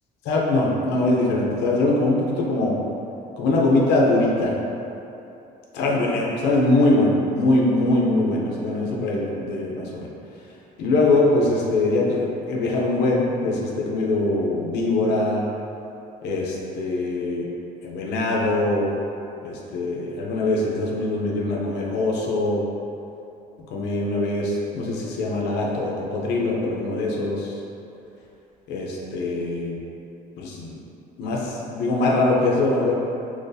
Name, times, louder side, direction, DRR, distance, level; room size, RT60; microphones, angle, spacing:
voice 1, 0.2-2.8 3.4-4.5 5.7-10.1 10.8-15.4 16.2-17.5 17.8-19.0 19.4-22.6 23.7-27.6 28.7-29.8 30.4-30.8 31.2-32.9, left 2 dB, 85° left, -3 dB, 0.6 m, -22 dB
2.9 x 2.6 x 3.9 m, 2.8 s
cardioid pair, 110°, 17 cm